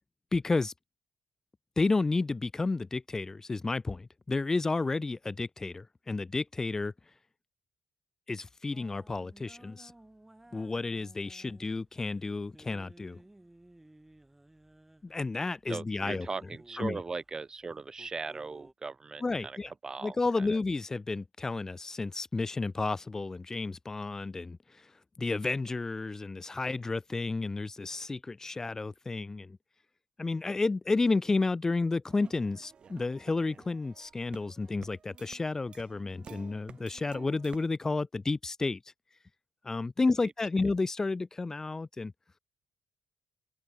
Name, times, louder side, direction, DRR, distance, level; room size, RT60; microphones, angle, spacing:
voice 1, 0.3-0.7 1.8-6.9 8.3-9.9 10.5-13.2 15.0-16.3 16.8-17.0 19.2-19.7 20.0-24.6 25.2-29.6 30.2-38.8 39.6-42.1, left 3 dB, 25° left, 0.4 m, -31 dB
sound 1, 8.7-18.7, right 1 dB, 10° right, 4.2 m, -57 dB
voice 2, 15.7-19.6 19.8-20.6, right 4 dB, 30° right, 0.7 m, -39 dB
sound 2, 32.1-37.7, right 6 dB, 50° right, 1.6 m, -52 dB
open air
supercardioid pair, 70°, 2 cm